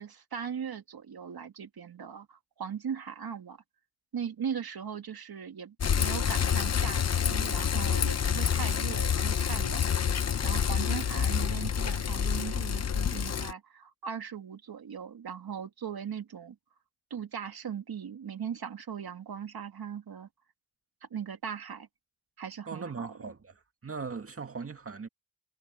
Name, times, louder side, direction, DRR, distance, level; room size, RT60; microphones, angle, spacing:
voice 1, 0.0-3.6 4.1-16.6 17.1-20.3 21.1-21.9 22.4-23.3, right 7 dB, 75° right, 2.4 m, -39 dB
Bicycle, 5.8-13.5, left 7 dB, 45° left, 0.8 m, -28 dB
voice 2, 22.7-23.5 23.8-25.1, right 5 dB, 35° right, 2.0 m, -39 dB
wide cardioid pair, 150°, 37 cm